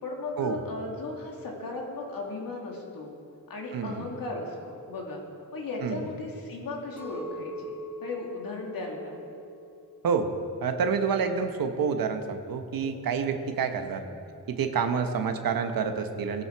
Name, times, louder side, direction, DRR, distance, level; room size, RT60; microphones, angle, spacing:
voice 1, 0.0-3.1 3.5-5.2 5.5-9.2 13.8-14.2, left 2 dB, 80° left, 0 dB, 2.6 m, -36 dB
voice 2, 3.7-4.1 5.8-6.0 10.0-10.3 10.6-14.0 14.5-16.4, right 6 dB, 90° right, 7 dB, 1.1 m, -28 dB
Chink clink, 7.0-11.3 11.7-12.3, equal, 5° right, 3.4 m, -43 dB
17.5 x 12.0 x 4.6 m, 2.6 s
cardioid pair, 95°, 34 cm